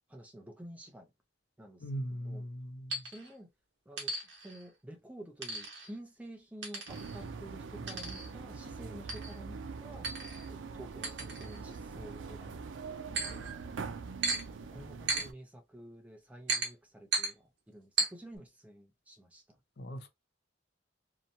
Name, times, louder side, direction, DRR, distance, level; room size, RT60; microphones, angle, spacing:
voice 1, 0.1-1.1 1.6-2.4 3.0-3.5 3.9-4.1 4.4-10.1 10.5-13.3 14.2-19.6, right 1 dB, 10° right, 0.5 m, -50 dB
voice 2, 1.8-3.0 13.2-13.5 19.8-20.1, equal, 60° left, 0.5 m, -40 dB
sound 1, 2.9-3.3 4.0-4.6 5.4-5.9 6.6-7.2 7.9-8.3 9.1-9.4 10.0-10.5 11.0-11.8 13.1-13.5 14.2-14.4 15.1-15.3 16.5-16.7 17.1-17.3 18.0-18.1, right 3 dB, 65° right, 1.0 m, -35 dB
sound 2, 6.9-15.3, right 5 dB, 85° right, 0.4 m, -43 dB
2.8 x 2.1 x 2.5 m
head